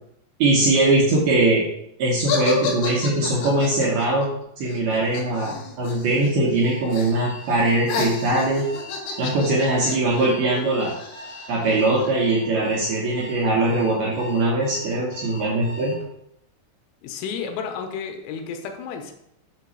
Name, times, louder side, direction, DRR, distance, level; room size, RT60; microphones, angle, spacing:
voice 1, 0.4-1.6 2.0-4.3 4.6-8.7 9.2-10.9 11.5-15.9, right 2 dB, 75° right, -5 dB, 2.4 m, -21 dB
sound 1, 2.3-6.3 6.5-7.2 7.5-12.1, left 5 dB, 65° left, 3.0 m, -31 dB
Alarm, 6.6-16.0, equal, 5° left, 0.7 m, -41 dB
voice 2, 17.0-19.1, left 6 dB, 90° left, 4 dB, 3.4 m, -32 dB
7.5 x 3.0 x 6.1 m, 0.77 s
omnidirectional pair, 6.0 m